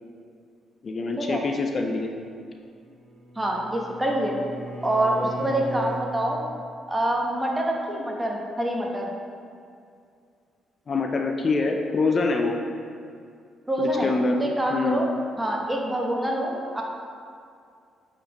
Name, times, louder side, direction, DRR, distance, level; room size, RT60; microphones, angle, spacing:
voice 1, 0.8-2.1 5.4-5.6 10.9-12.6 13.8-15.1, left 3 dB, 45° left, 3 dB, 0.4 m, -25 dB
Bowed string instrument, 2.7-6.1, equal, 75° right, 1.4 m, -38 dB
voice 2, 3.4-4.4 4.8-6.4 6.9-9.1 13.7-14.1 14.4-15.1 15.4-16.8, right 1 dB, 15° right, -1 dB, 0.9 m, -26 dB
8.1 x 4.1 x 2.9 m, 2.3 s
cardioid pair, 90°, 0 cm